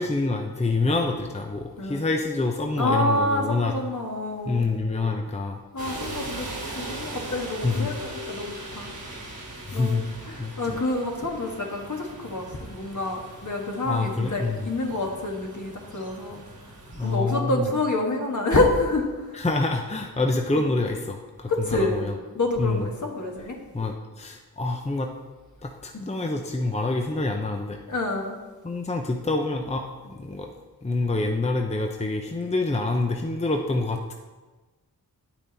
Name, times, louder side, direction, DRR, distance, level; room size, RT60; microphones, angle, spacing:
voice 1, 0.0-3.7 4.5-5.6 7.6-7.9 9.7-10.0 10.4-10.8 13.8-14.7 16.9-17.7 19.3-22.1 22.6-22.9 23.7-25.1 25.6-27.8 28.6-30.5 30.8-34.1, left 3 dB, 20° left, 3 dB, 0.7 m, -27 dB
voice 2, 2.8-4.7 5.7-8.9 9.7-16.4 17.0-19.4 21.5-22.0 22.3-23.6 25.9-26.1 27.9-28.4, left 2 dB, 50° left, 1 dB, 1.6 m, -27 dB
sound 1, 5.8-17.2, right 2 dB, 75° right, 2.2 m, -39 dB
8.6 x 5.9 x 4.1 m, 1.2 s
cardioid pair, 40°, 37 cm